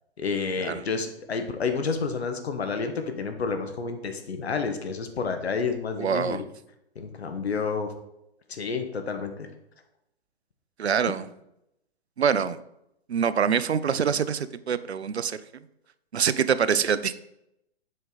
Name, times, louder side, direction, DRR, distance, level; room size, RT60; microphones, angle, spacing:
voice 1, 0.2-6.4 6.9-7.9 8.5-9.5 11.1-11.2, left 5 dB, 75° left, 7 dB, 1.3 m, -30 dB
voice 2, 6.0-6.4 10.8-11.3 12.2-12.6 13.1-15.4 16.1-17.1, right 7 dB, 85° right, 15 dB, 0.5 m, -25 dB
7.6 x 5.3 x 3.9 m, 0.82 s
figure-of-eight pair, 125°, 32 cm